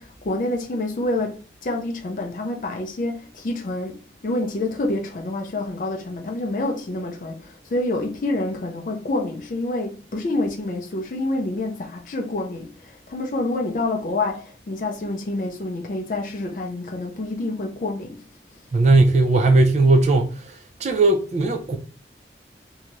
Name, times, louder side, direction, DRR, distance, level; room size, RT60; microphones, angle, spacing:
voice 1, 0.0-18.2, left 2 dB, 45° left, 0.4 m, -27 dB
voice 2, 18.7-20.5 20.8-21.8, right 2 dB, 40° right, 0.4 m, -17 dB
2.7 x 2.3 x 3.0 m
head